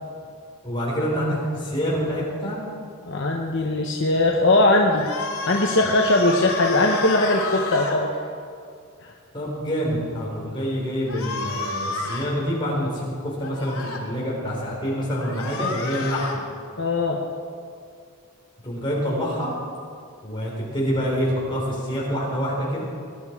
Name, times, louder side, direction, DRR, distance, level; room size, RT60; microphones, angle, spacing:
voice 1, 0.6-2.6 9.3-16.4 18.6-19.5 20.2-22.8, equal, 20° left, -5 dB, 4.5 m, -26 dB
voice 2, 3.1-5.1 5.5-8.1 9.0-9.1 16.8-17.2, left 2 dB, 55° left, 1 dB, 1.0 m, -20 dB
sound 1, 4.9-8.0 11.1-12.3 13.4-14.0 15.2-16.4, left 3 dB, 80° left, 2.5 m, -31 dB
21.0 x 11.5 x 4.8 m, 2.3 s
head